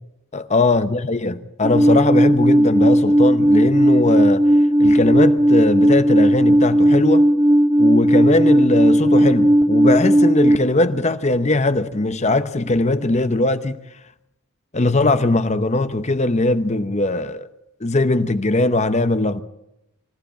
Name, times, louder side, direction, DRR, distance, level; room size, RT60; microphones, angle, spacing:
voice 1, 0.3-4.5 4.8-7.3 7.8-13.8 14.7-17.5 17.8-19.4, left 2 dB, 30° left, 0.9 m, -20 dB
Alarm, 1.6-10.6, equal, 20° right, 0.7 m, -15 dB
25.0 x 15.5 x 8.8 m
head